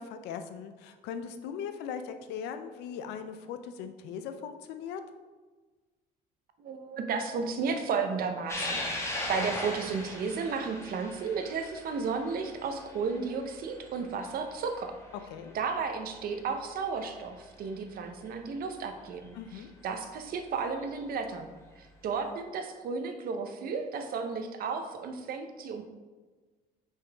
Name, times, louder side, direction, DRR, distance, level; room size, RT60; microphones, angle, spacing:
voice 1, 0.0-5.0 15.3-15.5 19.3-19.7, left 7 dB, 90° left, 9 dB, 0.6 m, -39 dB
voice 2, 6.6-15.0 15.5-25.8, right 5 dB, 60° right, 6 dB, 0.8 m, -33 dB
sound 1, 8.5-15.2 15.6-15.7 17.0-17.1 19.2-19.3 20.7-21.0, left 1 dB, 15° left, 1.3 m, -38 dB
5.5 x 5.4 x 3.4 m, 1.3 s
cardioid pair, 110°, 17 cm